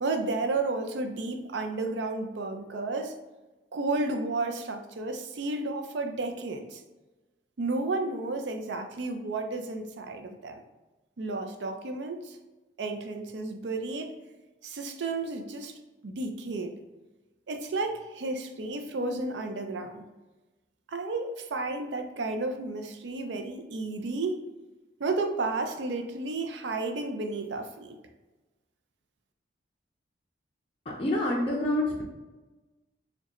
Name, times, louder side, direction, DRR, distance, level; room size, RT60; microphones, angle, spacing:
voice 1, 0.0-3.1 3.7-6.8 7.6-10.6 11.2-12.4 12.8-14.1 14.6-15.8 16.0-16.7 17.5-20.0 20.9-24.4 25.0-28.0, right 3 dB, 75° right, 6 dB, 0.5 m, -32 dB
voice 2, 31.0-32.0, left 1 dB, 30° left, -5 dB, 0.5 m, -27 dB
4.6 x 2.2 x 2.9 m, 1.1 s
head